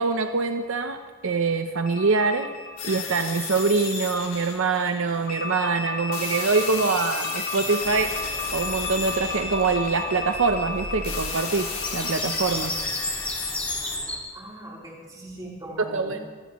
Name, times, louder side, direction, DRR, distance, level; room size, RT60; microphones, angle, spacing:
voice 1, 0.0-2.5 2.8-8.1 8.5-12.7 15.9-16.2, right 4 dB, 65° right, 7 dB, 0.7 m, -24 dB
sound 1, 1.8-4.4 5.3-13.6, left 3 dB, 40° left, 1.2 m, -34 dB
sound 2, 2.8-5.3 6.1-10.2 11.0-14.0, left 5 dB, 80° left, 3.5 m, -34 dB
Bird vocalization bird call bird song, 7.8-14.2, left 1 dB, 5° left, 2.1 m, -34 dB
voice 2, 14.3-16.4, equal, 20° right, -4 dB, 3.7 m, -40 dB
25.0 x 15.5 x 3.1 m, 1.5 s
head